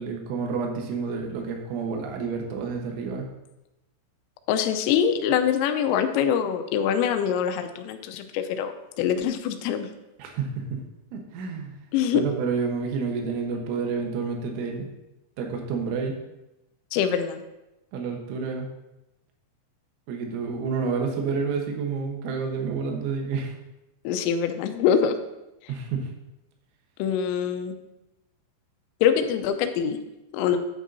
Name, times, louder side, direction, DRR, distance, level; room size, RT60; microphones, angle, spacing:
voice 1, 0.0-3.3 10.2-10.8 11.1-14.9 15.4-16.2 17.9-18.7 20.1-23.5 25.7-26.1, right 5 dB, 75° right, 2 dB, 3.4 m, -29 dB
voice 2, 4.5-9.9 11.9-12.2 16.9-17.4 24.0-25.1 27.0-27.7 29.0-30.0 30.3-30.6, left 8 dB, 80° left, 7 dB, 3.2 m, -24 dB
9.9 x 9.1 x 2.7 m, 0.96 s
omnidirectional pair, 5.9 m